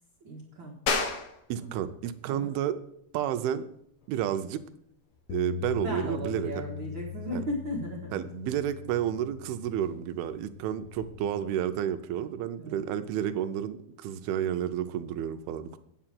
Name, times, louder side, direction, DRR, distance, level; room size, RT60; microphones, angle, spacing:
voice 1, 0.2-0.8 1.6-1.7 2.3-2.5 5.8-8.2 12.6-12.8, equal, 50° right, -2 dB, 1.6 m, -36 dB
sound 1, 0.9-11.1, left 4 dB, 60° left, 2.5 m, -39 dB
voice 2, 1.5-2.8 3.1-3.7 4.1-4.6 5.3-6.5 7.3-7.4 8.1-15.8, right 10 dB, 90° right, 11 dB, 2.6 m, -31 dB
sound 2, 5.3-11.5, left 14 dB, 80° left, 2.4 m, -41 dB
8.8 x 6.8 x 7.6 m, 0.70 s
omnidirectional pair, 4.4 m